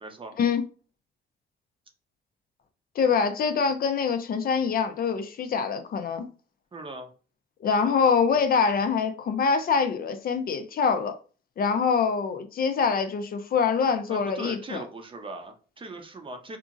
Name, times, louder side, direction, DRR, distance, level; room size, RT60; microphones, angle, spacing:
voice 1, 0.0-0.4 6.7-7.1 14.1-16.6, right 2 dB, 25° right, 0.6 m, -39 dB
voice 2, 3.0-6.3 7.6-11.1 11.6-14.8, left 6 dB, 50° left, 0.4 m, -24 dB
2.8 x 2.5 x 2.5 m
cardioid pair, 90°, 20 cm